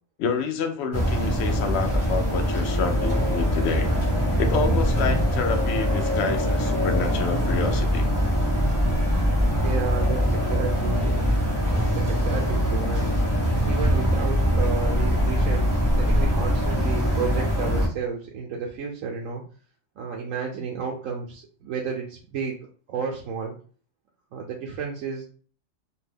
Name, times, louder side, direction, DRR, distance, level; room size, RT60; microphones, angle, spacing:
voice 1, 0.2-3.9 4.4-8.1, left 5 dB, 65° left, 5 dB, 0.8 m, -28 dB
sound 1, 0.9-17.9, equal, 10° left, 1.1 m, -23 dB
voice 2, 9.6-11.2 11.7-13.1 13.7-19.4 20.0-22.5 22.9-23.5 24.3-25.2, right 6 dB, 85° right, -2 dB, 1.0 m, -32 dB
2.7 x 2.2 x 3.3 m, 0.41 s
omnidirectional pair, 1.3 m